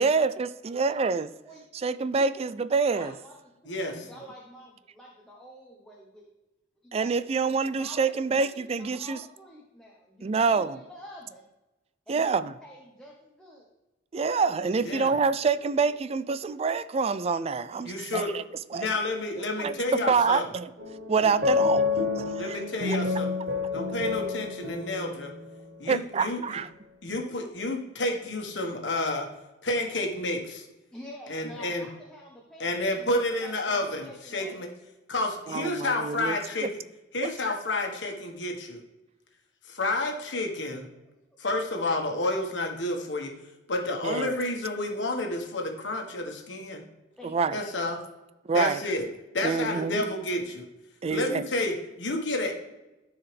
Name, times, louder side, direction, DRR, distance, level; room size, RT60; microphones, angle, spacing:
voice 1, 0.0-1.3 1.7-3.1 3.9-4.0 6.9-9.2 10.2-10.8 12.1-12.5 14.1-18.4 18.7-18.9 19.6-20.7 21.1-22.6 22.9-23.0 25.9-26.7 35.5-36.4 36.6-36.7 37.2-37.3 44.0-44.3 47.2-47.6 48.4-48.8 49.4-50.1 51.0-51.4, right 5 dB, 35° right, 14 dB, 0.3 m, -26 dB
voice 2, 0.9-1.6 2.9-3.4 3.6-6.3 6.8-7.1 7.5-8.0 8.3-11.5 12.1-12.3 12.6-13.7 30.9-34.6 47.2-48.0, equal, 5° left, -3 dB, 1.1 m, -48 dB
voice 3, 3.6-4.1 14.8-15.1 17.8-18.3 18.7-20.4 22.4-23.3 23.7-25.3 25.8-26.6 27.0-29.3 29.6-30.7 31.3-31.9 32.6-34.7 35.1-36.7 37.1-38.8 39.6-40.9 41.4-43.3 43.7-46.8 47.5-48.0 48.5-49.0 49.3-50.6 51.1-52.6, left 2 dB, 80° left, 2 dB, 1.5 m, -30 dB
sound 1, 20.8-25.6, left 4 dB, 55° right, 1.0 m, -29 dB
13.0 x 4.8 x 3.4 m, 1.0 s
head